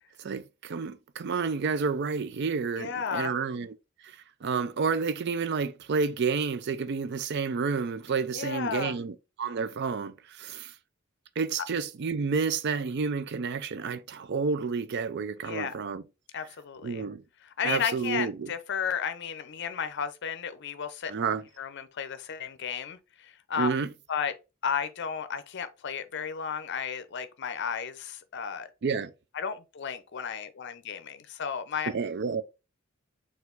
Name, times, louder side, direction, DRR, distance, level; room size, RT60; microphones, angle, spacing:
voice 1, 0.2-3.7 4.0-10.7 11.4-16.0 16.8-17.2 17.6-18.5 21.1-21.5 23.6-23.9 28.8-29.1 31.9-32.4, right 5 dB, 55° right, 0.4 m, -30 dB
voice 2, 2.8-3.3 8.3-8.9 15.4-15.8 16.3-17.0 17.6-21.1 21.6-23.7 24.1-24.3 24.6-28.7 29.3-31.9, left 7 dB, 55° left, 0.6 m, -33 dB
4.5 x 2.5 x 3.8 m
head